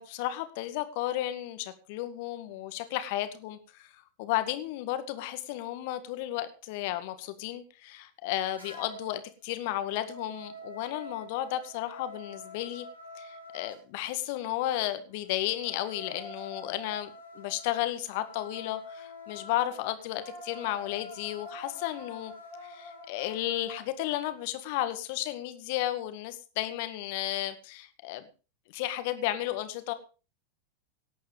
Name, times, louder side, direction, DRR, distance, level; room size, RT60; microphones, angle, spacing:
voice 1, 0.0-12.9 13.2-22.3 22.6-28.2 28.7-29.9, left 14 dB, 50° left, 11 dB, 1.9 m, -33 dB
sound 1, 8.6-9.2 9.6-13.8 15.3-23.8, left 2 dB, 85° right, 5.9 m, -46 dB
18.0 x 8.6 x 5.2 m, 0.35 s
figure-of-eight pair, 90°, 0 cm